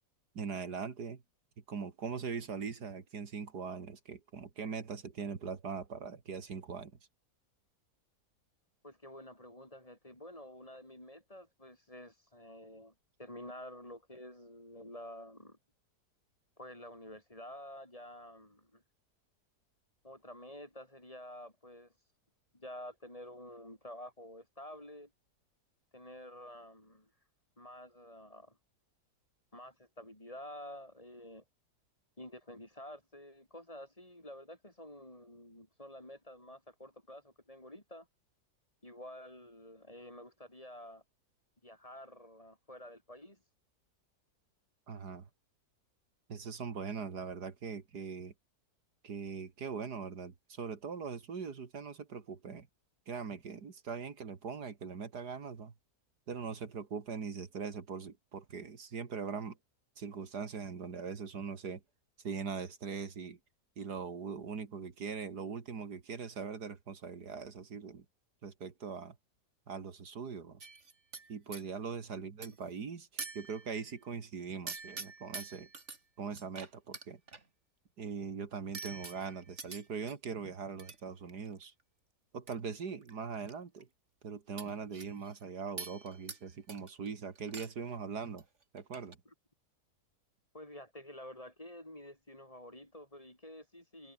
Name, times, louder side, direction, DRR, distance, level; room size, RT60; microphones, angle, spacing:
voice 1, 0.3-1.2 1.7-6.9 44.9-45.3 46.3-48.3 49.0-52.7 53.1-55.7 56.3-59.6 60.0-61.8 62.2-63.4 63.8-68.0 68.4-69.2 69.7-70.6 71.3-75.7 76.2-77.2 78.0-81.7 82.3-83.9 84.2-88.4 88.7-89.2, right 5 dB, 80° right, 2.7 m, -41 dB
voice 2, 8.8-12.9 13.2-15.6 16.6-18.8 20.0-21.9 22.5-25.1 25.9-27.1 27.6-28.6 29.5-31.4 32.2-38.1 38.8-41.0 41.6-43.4 72.1-72.3 89.2-89.3 90.5-94.1, left 1 dB, 20° left, 4.6 m, -50 dB
sound 1, 70.6-71.6 72.4-72.7 73.2-73.9 74.7-76.0 76.4-77.4 78.7-80.1 80.8-81.0 81.3-81.7 82.5-82.6 82.9-83.5 83.8-83.9 84.6-85.4 85.8-86.4 86.7-87.1 87.4-87.9 88.2-88.4 88.8-89.1, right 4 dB, 45° right, 2.7 m, -46 dB
omnidirectional pair, 1.7 m